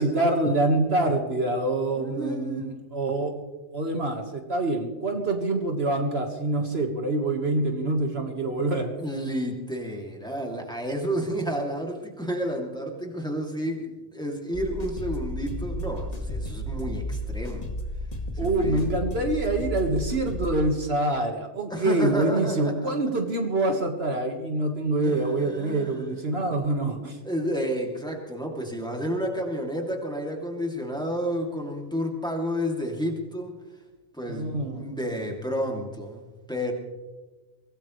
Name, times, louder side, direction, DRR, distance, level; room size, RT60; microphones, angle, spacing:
voice 1, 0.0-3.3 3.7-8.9 18.4-27.2 34.3-34.9, right 2 dB, 55° right, 3 dB, 1.9 m, -26 dB
voice 2, 1.9-2.8 9.0-17.7 18.3-18.9 21.7-22.9 25.0-26.2 27.2-33.5 34.1-36.7, equal, 5° left, 0 dB, 2.6 m, -31 dB
sound 1, 14.5-20.6, equal, 30° left, 1.9 m, -33 dB
24.0 x 18.0 x 3.2 m, 1.2 s
omnidirectional pair, 1.2 m